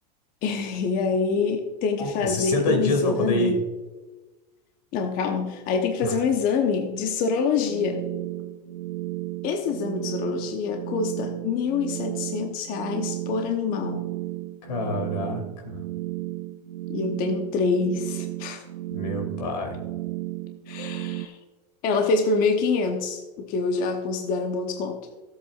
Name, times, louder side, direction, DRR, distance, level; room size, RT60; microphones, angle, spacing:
voice 1, 0.4-3.6 4.9-8.0 9.4-14.1 16.9-18.6 20.7-21.4 21.8-25.0, left 4 dB, 45° left, 4 dB, 0.9 m, -26 dB
voice 2, 2.0-3.5 6.0-6.2 14.6-15.8 18.9-19.7, left 2 dB, 90° left, 2 dB, 2.7 m, -26 dB
sound 1, 7.6-21.3, right 17 dB, 85° right, 0.5 m, -34 dB
14.0 x 8.0 x 2.4 m, 1.2 s
supercardioid pair, 125°, 21 cm